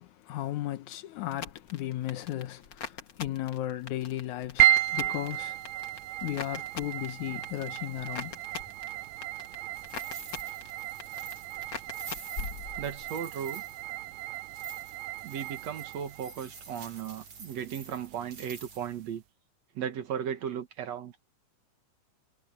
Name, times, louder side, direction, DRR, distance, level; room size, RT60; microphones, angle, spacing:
voice 1, 0.0-5.6 6.2-8.4, left 14 dB, 75° left, 2.2 m, -35 dB
sound 1, 1.3-13.2 13.5-14.1, left 6 dB, 40° left, 1.9 m, -43 dB
sound 2, 4.6-19.1, right 15 dB, 80° right, 1.6 m, -33 dB
sound 3, 9.7-18.9, right 4 dB, 45° right, 4.5 m, -48 dB
voice 2, 12.8-13.6 15.2-19.2 19.8-21.1, right 8 dB, 60° right, 2.4 m, -36 dB
omnidirectional pair, 3.7 m